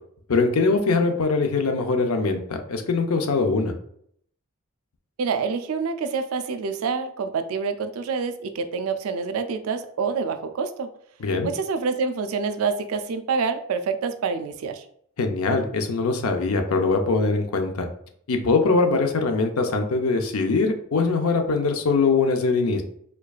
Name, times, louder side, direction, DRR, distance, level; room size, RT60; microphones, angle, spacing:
voice 1, 0.3-3.7 11.2-11.5 15.2-17.9 18.3-22.8, left 3 dB, 90° left, 5 dB, 0.5 m, -22 dB
voice 2, 5.2-10.9 11.4-14.8, right 5 dB, 85° right, 8 dB, 0.4 m, -27 dB
4.4 x 2.4 x 2.3 m, 0.66 s
head